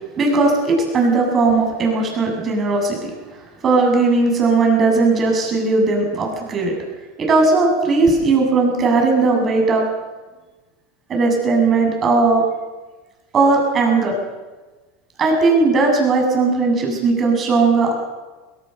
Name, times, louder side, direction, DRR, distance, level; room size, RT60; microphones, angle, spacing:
voice 1, 0.2-3.0 3.6-6.7 7.2-9.8 11.1-12.4 13.3-14.2 15.2-17.9, right 3 dB, 30° right, 1 dB, 7.6 m, -17 dB
20.5 x 18.5 x 6.8 m, 1.2 s
hypercardioid pair, 105°, 0 cm